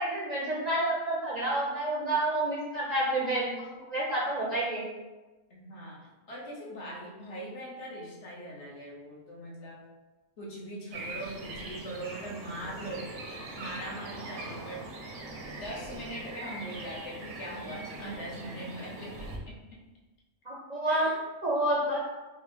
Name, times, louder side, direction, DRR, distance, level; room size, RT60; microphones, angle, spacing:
voice 1, 0.0-3.5 3.8-4.8 20.5-21.1 21.4-22.0, right 1 dB, 50° right, -5 dB, 0.5 m, -29 dB
voice 2, 5.5-9.8 10.4-15.3 15.6-19.1 19.5-19.6 20.8-21.2, right 1 dB, 65° left, -3 dB, 1.1 m, -41 dB
sound 1, 10.9-19.4, right 2 dB, 75° right, 0.9 m, -42 dB
4.0 x 2.1 x 3.0 m, 1.2 s
omnidirectional pair, 1.3 m